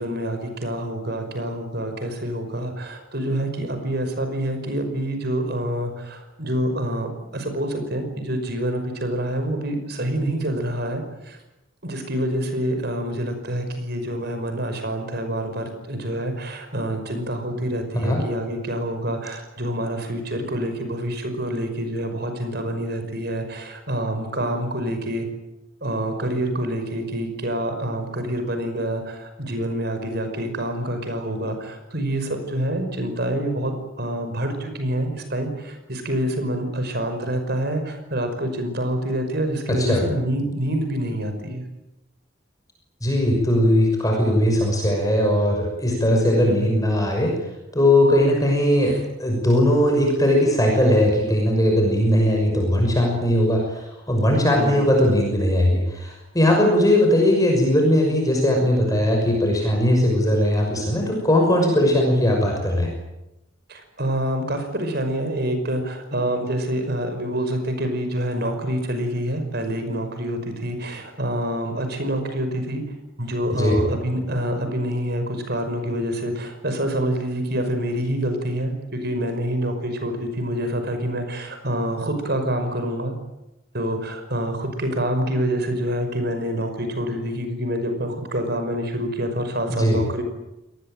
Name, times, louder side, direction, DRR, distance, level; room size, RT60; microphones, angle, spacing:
voice 1, 0.0-7.1 7.3-11.4 11.8-25.3 25.8-41.6 46.4-46.7 48.8-48.9 54.5-54.8 63.7-72.8 73.2-83.2 83.7-90.2, right 1 dB, 50° right, 7 dB, 5.6 m, -27 dB
voice 2, 39.7-40.0 43.0-47.3 47.7-62.9 73.6-73.8 89.7-90.0, left 1 dB, 15° left, 0 dB, 6.2 m, -19 dB
27.5 x 19.5 x 9.1 m, 0.93 s
head